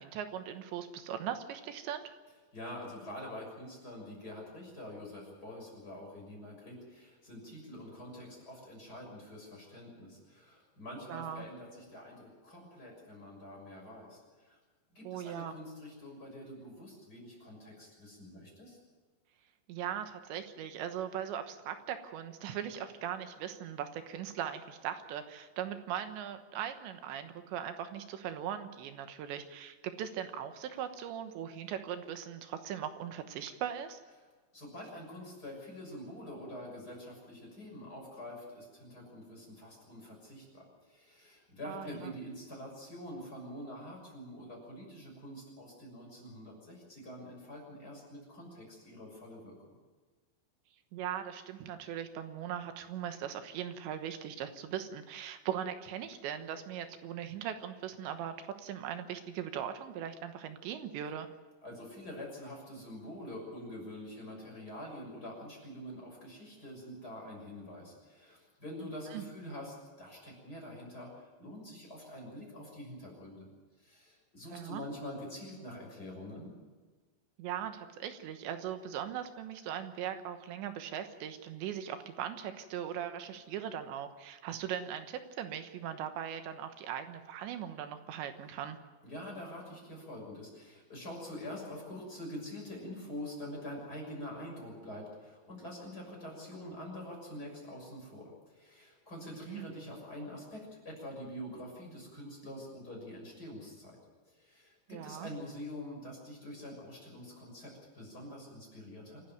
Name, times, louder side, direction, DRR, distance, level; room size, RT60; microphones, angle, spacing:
voice 1, 0.0-2.1 11.1-11.4 15.0-15.5 19.7-34.0 41.7-42.1 50.9-61.3 69.1-69.2 74.5-74.8 77.4-88.8 99.5-99.7 104.9-105.3, right 9 dB, 75° right, 8 dB, 3.3 m, -39 dB
voice 2, 2.5-14.6 14.9-18.8 34.5-49.5 61.6-73.5 73.8-76.5 89.0-104.0 104.2-109.2, left 1 dB, 20° left, -1 dB, 6.6 m, -46 dB
28.0 x 11.5 x 9.3 m, 1.4 s
omnidirectional pair, 5.5 m